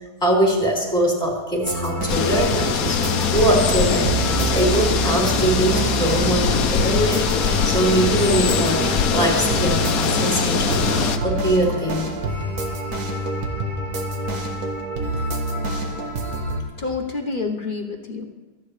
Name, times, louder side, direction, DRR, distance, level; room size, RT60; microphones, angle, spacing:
voice 1, 0.2-12.1, right 1 dB, 15° left, -4 dB, 3.5 m, -22 dB
sound 1, 1.6-16.6, right 2 dB, 70° right, 1.8 m, -26 dB
sound 2, 2.1-11.2, left 6 dB, 65° left, 1.2 m, -22 dB
voice 2, 16.8-18.2, left 4 dB, 35° left, 2 dB, 1.1 m, -28 dB
24.5 x 9.2 x 3.3 m, 1.2 s
omnidirectional pair, 1.7 m